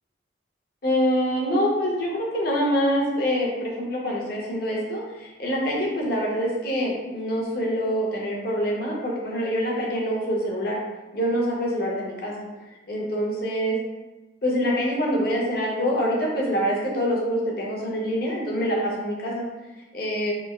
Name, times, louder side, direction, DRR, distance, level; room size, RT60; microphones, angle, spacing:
voice 1, 0.8-10.8 11.1-12.5 12.9-13.8 14.4-19.5 19.9-20.3, equal, 55° left, -3 dB, 0.6 m, -25 dB
3.2 x 2.2 x 2.3 m, 1.1 s
head